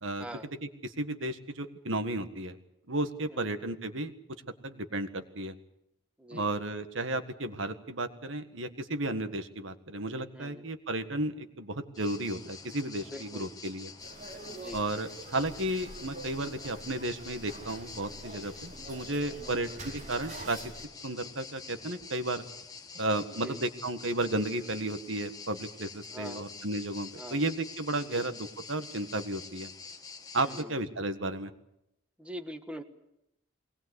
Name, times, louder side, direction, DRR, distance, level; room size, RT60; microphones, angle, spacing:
voice 1, 0.6-2.6 2.9-4.1 4.6-5.5 6.3-13.9 14.7-20.6 21.0-22.4 22.9-29.7 30.3-31.5, right 2 dB, 70° right, 9 dB, 1.7 m, -33 dB
sound 1, 11.9-30.6, left 5 dB, 20° left, 1.9 m, -47 dB
voice 2, 13.1-13.4 14.5-14.8 19.4-19.6 23.4-23.6 26.1-26.4 27.2-27.4 28.1-28.2 30.4-30.7 32.2-32.8, equal, 5° right, 6 dB, 1.5 m, -42 dB
sound 2, 14.0-20.9, right 2 dB, 35° right, 4.5 m, -46 dB
22.0 x 19.5 x 8.2 m, 0.83 s
head